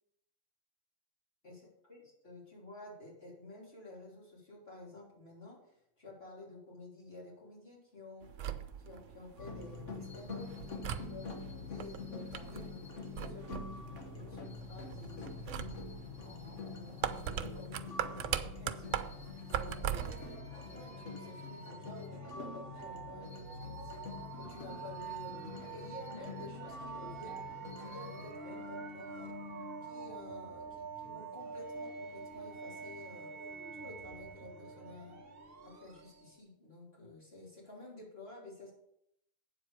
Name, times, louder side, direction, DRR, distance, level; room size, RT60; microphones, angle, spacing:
voice 1, 1.4-8.4 8.8-13.9 14.1-15.8 16.2-19.0 19.5-20.2 20.7-27.4 27.7-29.3 29.8-33.3 33.7-35.2 35.6-38.7, left 2 dB, 50° left, -5 dB, 3.7 m, -51 dB
sound 1, 8.2-20.3, right 10 dB, 75° right, 1.0 m, -41 dB
sound 2, 9.4-28.3, left 4 dB, 70° left, 1.6 m, -46 dB
sound 3, 18.9-36.4, right 4 dB, 50° right, 1.2 m, -47 dB
8.7 x 7.5 x 5.0 m, 0.75 s
omnidirectional pair, 1.3 m